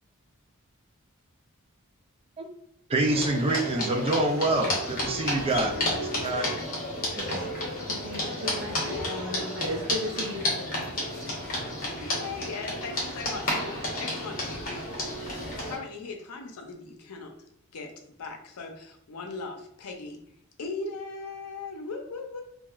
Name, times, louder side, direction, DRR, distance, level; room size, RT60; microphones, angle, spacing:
voice 1, 2.9-6.6 7.2-7.5, right 2 dB, 25° right, 3 dB, 0.3 m, -27 dB
sound 1, 3.1-15.8, left 1 dB, 40° left, 0.9 m, -31 dB
voice 2, 7.8-10.5, equal, 65° right, 0 dB, 0.6 m, -35 dB
voice 3, 8.8-9.6 12.0-17.3 17.7-17.9 18.2-20.2 20.6-22.4, left 3 dB, 90° left, 4 dB, 0.5 m, -39 dB
3.0 x 2.3 x 2.3 m, 0.69 s
head